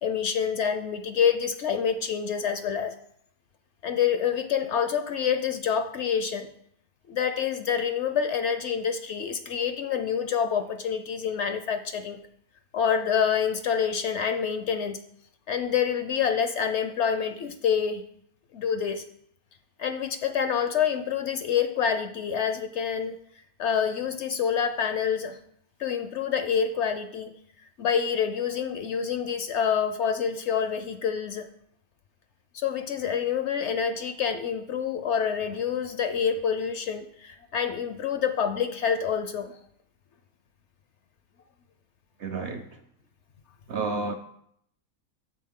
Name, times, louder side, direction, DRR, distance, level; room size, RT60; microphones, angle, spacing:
voice 1, 0.0-2.9 3.8-6.5 7.1-12.2 12.7-15.0 15.5-18.0 18.5-19.0 19.8-23.2 23.6-25.4 25.8-27.3 27.8-31.5 32.5-39.5, left 7 dB, 65° left, 0.8 m, -27 dB
voice 2, 42.2-42.7 43.7-44.1, right 3 dB, 60° right, 0.7 m, -30 dB
8.5 x 6.9 x 3.6 m
omnidirectional pair, 1.5 m